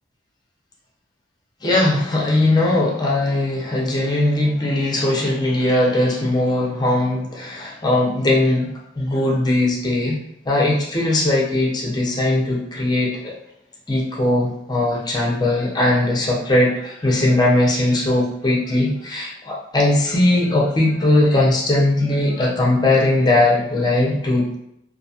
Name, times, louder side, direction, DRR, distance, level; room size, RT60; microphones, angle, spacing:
voice 1, 1.6-8.7 9.0-10.2 10.5-13.3 13.9-24.5, left 1 dB, 20° left, -2 dB, 0.6 m, -19 dB
2.6 x 2.3 x 2.7 m, 0.82 s
head